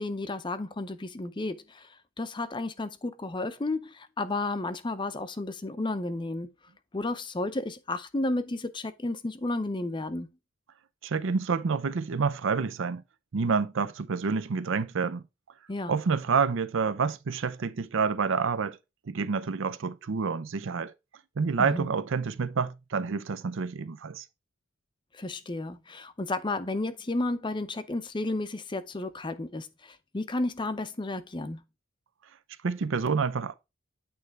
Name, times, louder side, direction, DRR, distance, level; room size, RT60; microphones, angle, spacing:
voice 1, 0.0-1.9 2.2-6.5 6.9-10.3 15.7-15.9 21.6-21.9 25.1-31.6, left 2 dB, 20° left, 0.5 m, -32 dB
voice 2, 11.0-13.0 13.3-15.2 15.9-18.8 19.1-20.9 21.4-24.2 32.6-33.5, right 5 dB, 60° right, 0.5 m, -28 dB
8.9 x 3.2 x 4.6 m
head